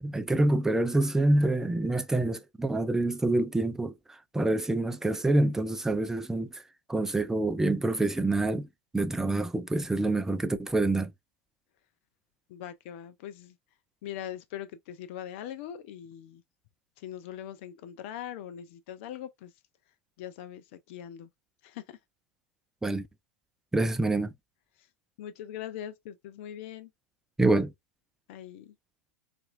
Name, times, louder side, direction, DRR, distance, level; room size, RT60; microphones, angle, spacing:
voice 1, 0.0-3.9 4.3-6.6 6.9-8.7 8.9-11.1 22.8-23.1 23.7-24.3 27.4-27.7, right 2 dB, 5° right, 0.4 m, -26 dB
voice 2, 12.5-13.6 14.0-16.4 17.0-19.5 20.2-21.3 21.6-22.0 25.2-26.9 28.3-28.7, left 10 dB, 60° left, 0.4 m, -41 dB
4.0 x 2.5 x 2.4 m
hypercardioid pair, 100°, 7 cm